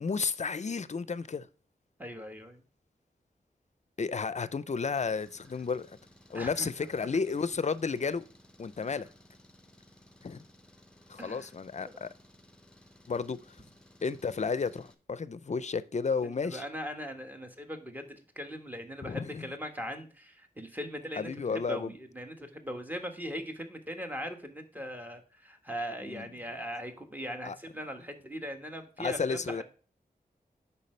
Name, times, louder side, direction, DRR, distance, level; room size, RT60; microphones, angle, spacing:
voice 1, 0.0-1.5 4.0-6.0 6.3-8.2 8.6-9.1 10.2-10.4 11.1-12.1 13.1-13.4 14.0-16.6 19.0-19.5 21.2-21.9 26.1-26.3 27.4-27.6 29.0-29.6, left 5 dB, 45° left, 0.5 m, -32 dB
voice 2, 2.0-2.6 6.3-6.7 8.8-9.0 11.2-11.5 11.8-11.9 16.2-29.6, equal, 10° right, 1.4 m, -40 dB
Engine, 4.9-14.9, left 1 dB, 5° left, 1.0 m, -59 dB
8.3 x 5.7 x 3.2 m
wide cardioid pair, 90°, 16 cm